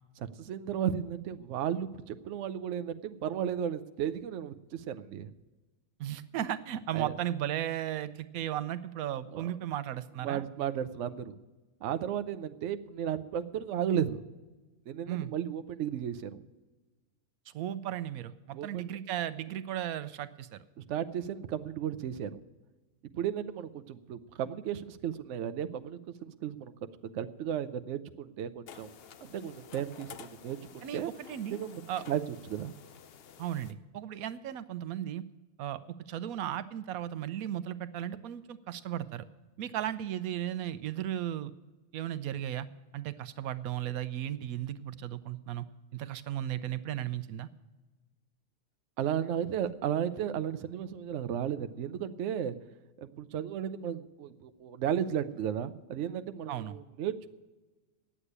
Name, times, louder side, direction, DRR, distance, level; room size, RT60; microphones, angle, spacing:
voice 1, 0.2-5.3 6.9-7.1 9.3-9.5 10.2-11.3 11.8-14.2 14.9-16.4 18.5-18.9 20.9-22.4 23.1-28.9 29.2-31.1 31.5-32.2 32.5-32.7 49.0-52.6 53.0-57.3, right 9 dB, 65° right, 10 dB, 0.9 m, -34 dB
voice 2, 6.0-10.5 15.1-15.3 17.5-20.6 30.8-31.6 31.9-32.0 33.4-35.2 35.6-35.8 36.1-39.3 39.6-41.5 41.9-42.7 42.9-45.6 45.9-47.5 56.5-56.8, right 11 dB, 85° right, 13 dB, 1.1 m, -35 dB
sound 1, 28.7-33.7, left 8 dB, 55° left, 0.7 m, -51 dB
9.9 x 8.2 x 9.8 m, 1.2 s
omnidirectional pair, 1.4 m